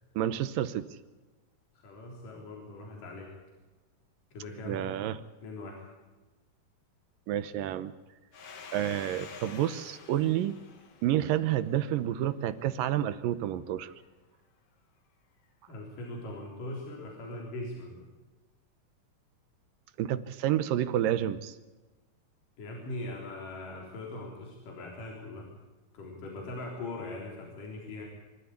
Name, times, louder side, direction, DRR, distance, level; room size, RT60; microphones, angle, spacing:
voice 1, 0.2-0.9 4.6-5.2 7.3-7.9 8.7-10.5 11.0-13.9 20.0-21.6, right 12 dB, 75° right, 13 dB, 2.4 m, -29 dB
voice 2, 1.8-3.3 4.3-4.8 5.4-5.9 15.7-18.0 22.6-25.5 25.9-28.1, left 2 dB, 65° left, -1 dB, 5.2 m, -40 dB
Domestic sounds home sounds, 8.3-12.7, left 5 dB, 45° left, 2.7 m, -49 dB
25.5 x 13.0 x 8.3 m, 1.2 s
omnidirectional pair, 4.2 m